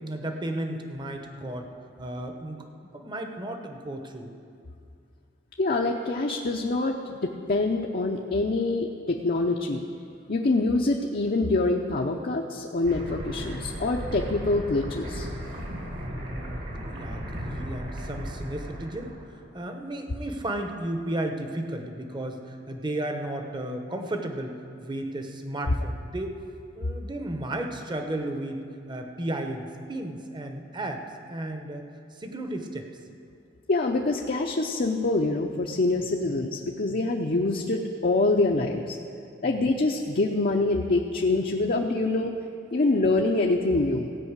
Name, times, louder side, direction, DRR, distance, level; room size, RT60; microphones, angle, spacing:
voice 1, 0.0-1.7 2.0-2.7 2.9-4.3 16.2-19.2 19.5-26.3 26.8-28.6 28.9-31.0 31.3-31.8 32.2-32.9 36.0-36.4, right 1 dB, 25° right, 4 dB, 0.9 m, -34 dB
voice 2, 5.6-9.8 10.3-15.3 33.7-39.0 39.4-42.3 42.7-44.2, left 2 dB, 50° left, 1 dB, 0.6 m, -25 dB
sound 1, 12.8-19.2, equal, 60° right, 2.2 m, -36 dB
16.0 x 5.4 x 8.1 m, 2.4 s
head